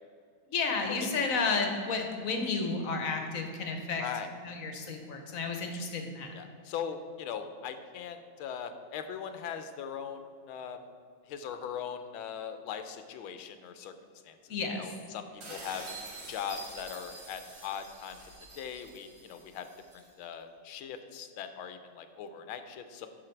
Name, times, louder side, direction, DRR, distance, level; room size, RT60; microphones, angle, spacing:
voice 1, 0.5-4.0 4.4-6.3 14.5-14.9, left 4 dB, 55° left, 4 dB, 1.1 m, -32 dB
voice 2, 4.0-4.3 6.3-10.8 11.3-13.9 14.2-14.4 14.8-15.9 16.3-18.2 18.6-19.7 20.2-23.1, left 8 dB, 85° left, 8 dB, 1.5 m, -40 dB
sound 1, 15.4-20.1, right 2 dB, 85° right, 2.9 m, -47 dB
9.0 x 6.3 x 4.5 m, 2.3 s
omnidirectional pair, 2.2 m